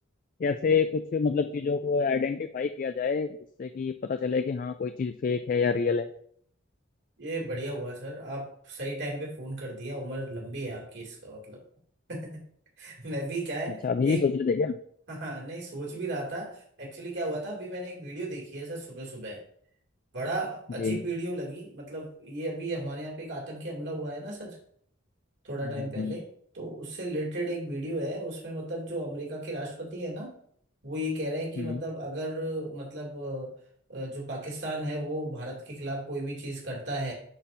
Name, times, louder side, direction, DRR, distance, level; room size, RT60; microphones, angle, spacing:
voice 1, 0.4-6.1 13.8-14.8 20.8-21.0 25.8-26.2 31.6-31.8, left 5 dB, 45° left, 9 dB, 0.3 m, -27 dB
voice 2, 7.2-11.6 12.1-12.4 12.8-14.3 15.1-19.4 20.1-24.6 25.4-26.3 26.5-30.3 30.8-33.5 33.9-37.1, right 1 dB, 60° right, -3 dB, 2.5 m, -35 dB
11.0 x 4.3 x 2.6 m, 0.64 s
head